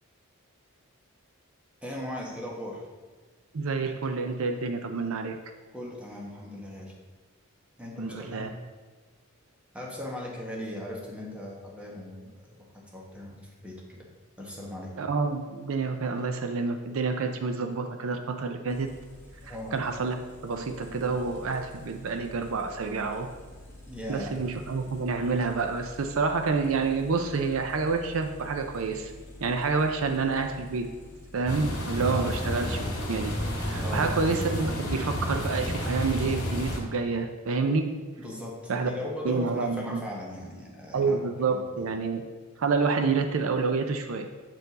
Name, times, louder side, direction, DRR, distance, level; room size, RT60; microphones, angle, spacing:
voice 1, 1.8-2.9 5.7-6.9 7.8-8.5 9.7-14.1 14.4-14.9 19.4-19.8 23.9-24.4 32.1-32.4 33.7-34.2 38.2-41.2 41.5-41.9, left 1 dB, 5° right, -3 dB, 1.1 m, -38 dB
voice 2, 3.5-5.4 8.0-8.5 15.0-18.9 19.5-20.2 20.4-23.3 24.1-29.1 29.4-30.9 31.3-32.8 33.1-33.3 33.6-37.9 38.7-38.9 39.2-40.0 40.9-42.2 42.6-44.3, right 4 dB, 70° right, 6 dB, 0.5 m, -28 dB
sound 1, 18.7-33.5, left 1 dB, 10° left, 1.5 m, -48 dB
sound 2, 31.5-36.8, equal, 55° left, 1.7 m, -31 dB
8.0 x 4.4 x 4.0 m, 1.4 s
head